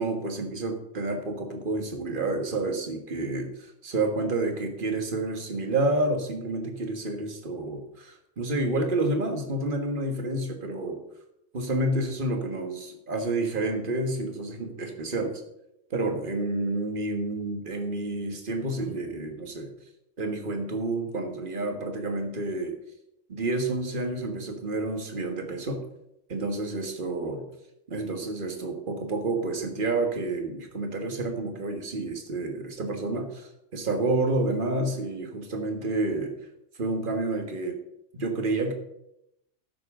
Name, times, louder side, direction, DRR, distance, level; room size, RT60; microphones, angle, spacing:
voice 1, 0.0-3.5 3.8-11.0 11.5-15.3 15.9-19.7 20.2-22.7 23.3-25.8 26.3-27.5 27.9-36.3 36.8-37.8 38.1-38.7, right 2 dB, 40° right, 4 dB, 1.7 m, -29 dB
12.5 x 9.7 x 3.7 m, 0.83 s
omnidirectional pair, 1.4 m